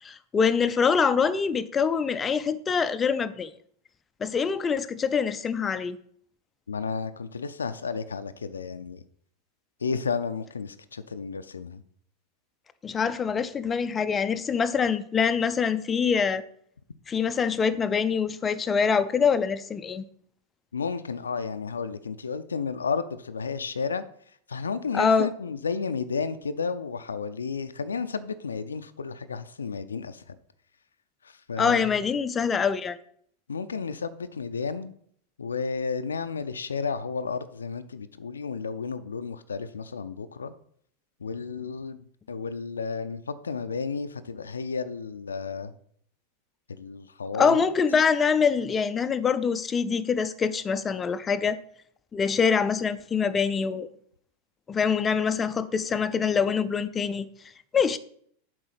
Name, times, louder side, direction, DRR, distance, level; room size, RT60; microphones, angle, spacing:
voice 1, 0.0-3.5 4.2-6.0 12.8-16.5 17.1-20.0 24.9-25.3 31.6-33.0 47.3-51.6 52.1-53.9 54.7-57.3 57.7-58.0, left 6 dB, 20° left, 0.5 m, -24 dB
voice 2, 6.7-9.0 9.8-11.8 20.7-24.0 24.5-30.4 31.2-32.0 33.5-34.9 35.4-40.5 41.2-45.7 46.7-47.6, left 5 dB, 80° left, 0.5 m, -32 dB
7.7 x 4.7 x 5.8 m
figure-of-eight pair, 90°, 0 cm